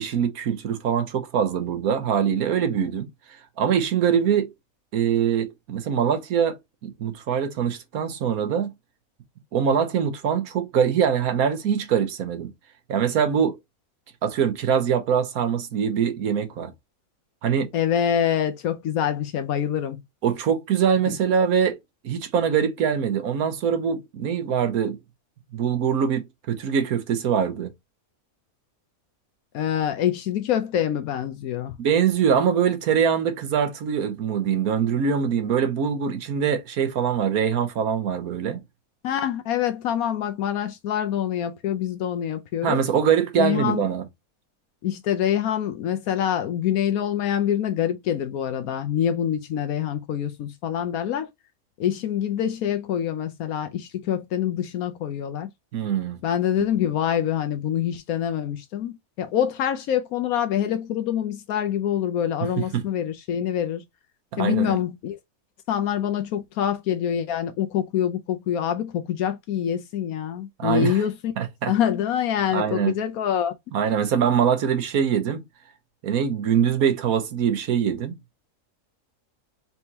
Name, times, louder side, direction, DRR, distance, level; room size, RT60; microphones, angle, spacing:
voice 1, 0.0-4.5 4.9-8.7 9.5-12.5 12.9-13.6 14.2-16.7 17.4-17.7 20.2-21.8 22.0-25.0 25.5-27.7 31.8-38.6 42.6-44.0 55.7-56.2 56.6-56.7 62.4-62.8 64.3-64.8 70.6-71.0 71.4-71.7 72.5-72.9 73.7-75.4 76.0-78.2, right 7 dB, 90° right, 1.4 m, -23 dB
voice 2, 17.7-20.0 21.1-21.2 29.5-31.8 39.0-42.8 43.4-43.8 44.8-51.3 51.8-55.5 56.2-63.8 64.4-65.2 65.7-71.3 71.7-73.5, left 10 dB, 80° left, 1.1 m, -25 dB
4.3 x 3.5 x 2.8 m
omnidirectional pair, 1.5 m